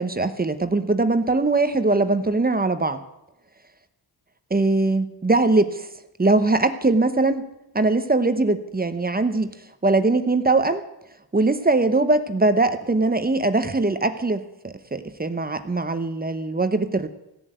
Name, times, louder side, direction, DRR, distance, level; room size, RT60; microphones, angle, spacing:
voice 1, 0.0-3.0 4.5-5.9 6.2-7.5 7.7-9.5 9.8-10.8 11.3-17.1, right 2 dB, 20° right, 10 dB, 0.9 m, -21 dB
16.0 x 7.5 x 9.2 m, 0.87 s
wide cardioid pair, 130°, 41 cm